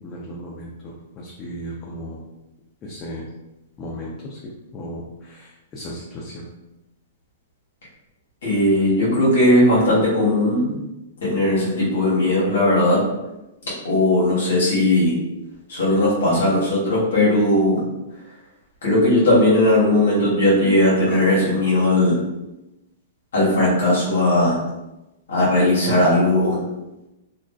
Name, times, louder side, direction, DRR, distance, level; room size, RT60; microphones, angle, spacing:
voice 1, 0.0-2.2 2.8-3.3 3.8-6.4, equal, 25° left, -4 dB, 0.4 m, -36 dB
voice 2, 8.4-10.7 11.2-13.0 13.8-15.1 15.7-17.8 18.8-22.2 23.3-24.6 25.3-26.6, left 1 dB, 75° left, -7 dB, 1.1 m, -18 dB
2.4 x 2.2 x 2.3 m, 0.96 s
hypercardioid pair, 135°, 0 cm